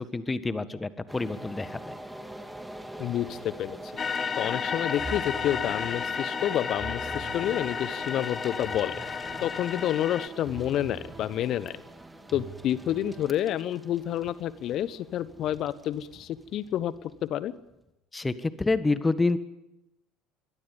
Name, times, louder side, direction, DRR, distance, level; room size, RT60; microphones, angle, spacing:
voice 1, 0.0-2.0 18.1-19.4, left 3 dB, 15° left, 14 dB, 1.6 m, -28 dB
sound 1, 1.1-17.9, right 1 dB, 5° right, 2.6 m, -45 dB
voice 2, 3.0-3.8 4.4-8.9 9.4-11.8 12.3-16.9 17.2-17.5, left 11 dB, 50° left, 17 dB, 1.1 m, -29 dB
sound 2, 4.0-10.3, left 6 dB, 35° left, 1.2 m, -32 dB
sound 3, 4.7-13.3, right 3 dB, 20° right, 2.9 m, -45 dB
26.5 x 22.5 x 5.4 m, 0.88 s
figure-of-eight pair, 65°, 0 cm